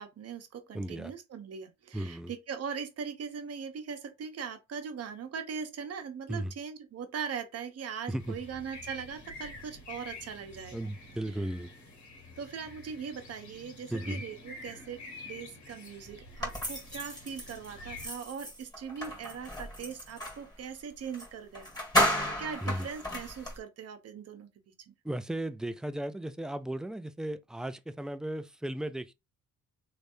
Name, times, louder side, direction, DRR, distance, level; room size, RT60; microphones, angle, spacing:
voice 1, 0.0-10.9 12.4-15.0 15.3-21.8 22.1-24.9, right 6 dB, 55° right, 0.9 m, -40 dB
voice 2, 0.7-1.1 1.9-2.3 6.3-6.5 8.1-8.4 10.7-11.7 13.9-14.2 22.6-22.9 25.0-29.1, right 1 dB, ahead, 0.3 m, -35 dB
sound 1, 8.2-18.1, left 2 dB, 65° left, 1.8 m, -48 dB
sound 2, 16.4-20.4 21.1-21.3 21.5-23.6, equal, 15° left, 2.0 m, -33 dB
3.3 x 3.2 x 2.6 m
cardioid pair, 90°, 30 cm